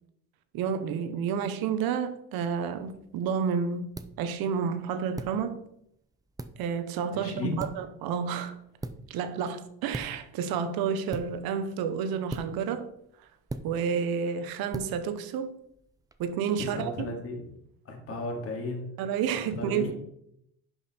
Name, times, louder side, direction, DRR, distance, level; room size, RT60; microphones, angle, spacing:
voice 1, 0.5-3.9 4.2-5.6 6.6-8.6 9.1-12.9 13.6-15.5 16.2-16.9 19.0-19.9, right 7 dB, 75° right, 1.1 m, -30 dB
sound 1, 2.8-16.2, right 2 dB, 10° right, 0.5 m, -44 dB
voice 2, 7.1-7.6 16.6-17.4 17.8-18.9 19.5-20.0, left 2 dB, 40° left, 2.4 m, -34 dB
11.0 x 5.4 x 4.4 m
cardioid pair, 130°, 36 cm